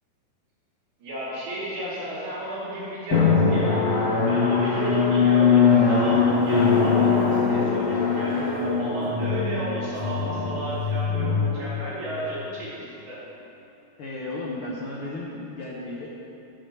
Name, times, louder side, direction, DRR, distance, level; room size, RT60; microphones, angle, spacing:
voice 1, 1.0-3.8 4.2-13.2, right 1 dB, 70° right, -11 dB, 3.8 m, -33 dB
Drum, 3.1-12.4, left 5 dB, 50° left, 2.6 m, -21 dB
voice 2, 14.0-16.1, left 2 dB, 70° left, -5 dB, 1.3 m, -34 dB
15.0 x 6.3 x 3.3 m, 2.8 s
omnidirectional pair, 3.7 m